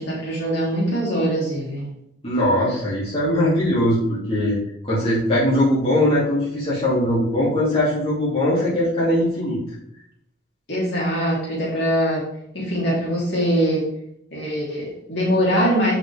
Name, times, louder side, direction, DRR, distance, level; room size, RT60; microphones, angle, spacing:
voice 1, 0.0-1.9 10.7-12.2 12.5-13.8 14.3-15.9, equal, 60° left, -5 dB, 3.0 m, -22 dB
voice 2, 2.2-4.6 4.8-9.6, left 1 dB, 30° left, -8 dB, 2.7 m, -20 dB
7.5 x 6.2 x 3.5 m, 0.76 s
head